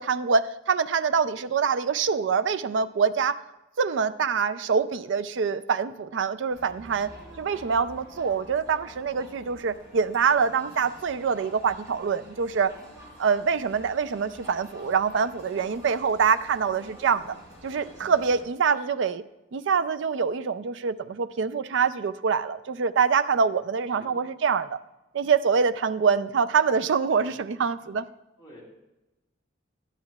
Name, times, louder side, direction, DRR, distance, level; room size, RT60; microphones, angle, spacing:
voice 1, 0.0-3.4 3.8-7.1 7.4-12.7 13.2-17.3 17.6-19.2 19.5-24.8 25.1-28.1, right 6 dB, 70° right, 13 dB, 0.4 m, -25 dB
Crowd, 6.5-18.4, equal, 20° right, 3.5 m, -48 dB
voice 2, 18.7-18.8 24.0-24.2 28.4-28.6, equal, 25° left, -4 dB, 2.9 m, -49 dB
12.0 x 10.5 x 2.3 m, 0.99 s
head